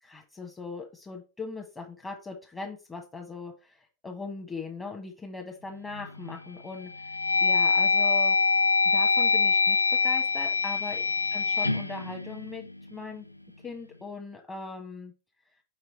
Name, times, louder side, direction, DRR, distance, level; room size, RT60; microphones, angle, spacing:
voice 1, 0.0-8.4 8.9-11.0 11.3-13.2 13.6-15.1, left 4 dB, 15° left, 1 dB, 1.3 m, -40 dB
sound 1, 5.9-6.4 6.9-13.0, left 4 dB, 85° left, 0.4 m, -25 dB
5.0 x 4.7 x 4.5 m, 0.32 s
figure-of-eight pair, 90°, 0 cm